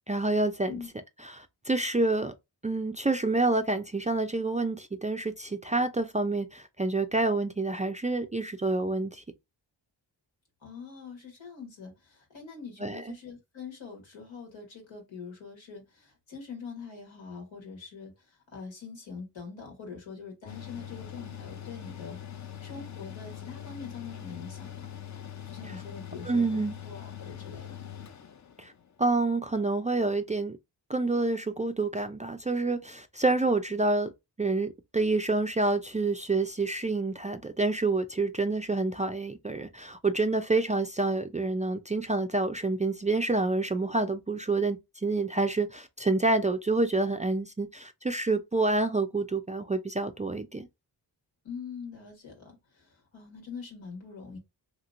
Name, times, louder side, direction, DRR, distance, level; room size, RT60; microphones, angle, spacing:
voice 1, 0.1-0.8 1.3-2.3 2.6-9.2 12.8-13.2 26.3-26.8 28.6-28.7 29.0-30.6 30.9-34.1 34.4-50.7, right 3 dB, 20° right, 0.3 m, -28 dB
voice 2, 10.6-24.9 25.4-27.8 51.4-54.4, left 5 dB, 85° left, 1.6 m, -44 dB
Mechanical fan, 20.5-28.9, left 10 dB, 40° left, 0.6 m, -42 dB
2.9 x 2.9 x 2.4 m
cardioid pair, 45°, 46 cm